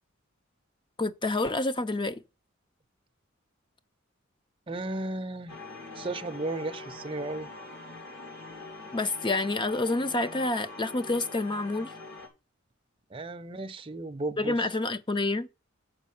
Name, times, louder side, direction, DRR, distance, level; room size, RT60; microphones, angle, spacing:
voice 1, 1.0-2.2 8.9-11.9 14.4-15.5, left 2 dB, 25° left, 0.6 m, -28 dB
voice 2, 4.7-5.6 5.9-7.5 13.1-14.7, right 2 dB, 25° right, 0.6 m, -34 dB
sound 1, 5.5-12.3, left 3 dB, 55° left, 2.6 m, -44 dB
7.3 x 5.0 x 7.0 m
head